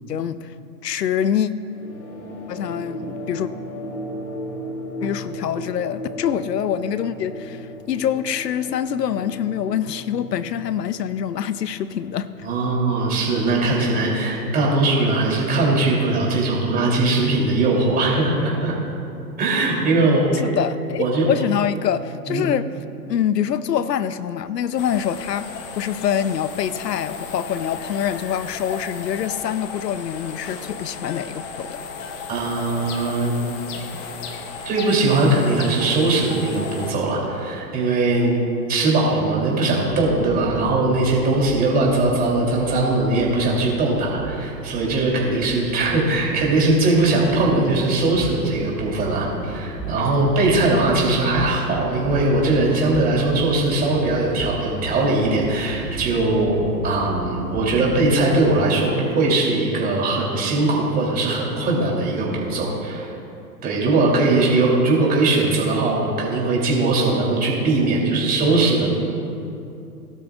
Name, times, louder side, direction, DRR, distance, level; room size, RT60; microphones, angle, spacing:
voice 1, 0.1-0.5 0.8-1.5 2.5-3.5 5.0-12.3 20.3-22.7 23.1-31.8, left 9 dB, 80° left, 15 dB, 0.7 m, -25 dB
sound 1, 1.7-16.6, equal, 55° left, 2.4 m, -37 dB
voice 2, 12.4-18.7 19.4-20.2 21.0-21.2 22.3-22.4 32.3-33.3 34.6-38.3 38.7-56.5 56.8-63.1 63.6-68.9, right 2 dB, 20° right, -3 dB, 3.1 m, -20 dB
sound 2, 24.8-36.9, left 5 dB, 25° left, 0.8 m, -35 dB
sound 3, 39.9-58.5, right 2 dB, 5° left, 2.2 m, -35 dB
19.5 x 12.0 x 2.4 m, 2.6 s
hypercardioid pair, 130°, 49 cm